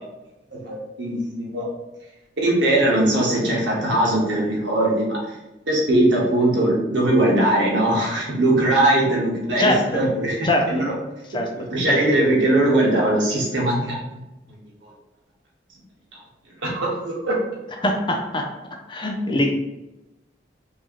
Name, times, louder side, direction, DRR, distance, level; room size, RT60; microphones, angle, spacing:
voice 1, 0.5-1.7 2.4-5.2 5.7-10.9 11.5-14.0 16.6-17.4 19.3-19.5, right 1 dB, 90° right, -3 dB, 1.3 m, -20 dB
voice 2, 9.6-10.0 10.4-10.7 11.3-11.5 11.9-12.0 17.8-18.5 18.9-19.5, left 1 dB, 25° left, 3 dB, 0.5 m, -22 dB
4.6 x 2.7 x 3.0 m, 1.0 s
head